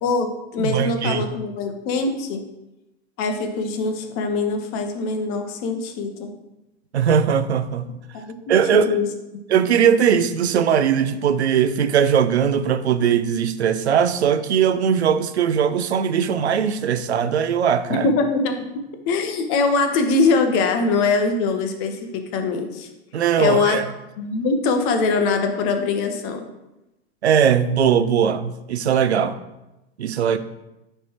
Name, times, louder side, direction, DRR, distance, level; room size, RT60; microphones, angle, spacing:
voice 1, 0.0-2.4 3.2-6.3 8.1-9.1 17.9-18.7 19.1-22.9 23.4-23.8 24.2-26.4, left 4 dB, 40° left, 0.9 m, -22 dB
voice 2, 0.6-1.3 6.9-7.9 8.5-8.9 9.5-18.1 23.1-23.9 27.2-29.4 30.0-30.4, right 8 dB, 85° right, 0.5 m, -19 dB
9.5 x 3.4 x 3.0 m
hypercardioid pair, 95°, 32 cm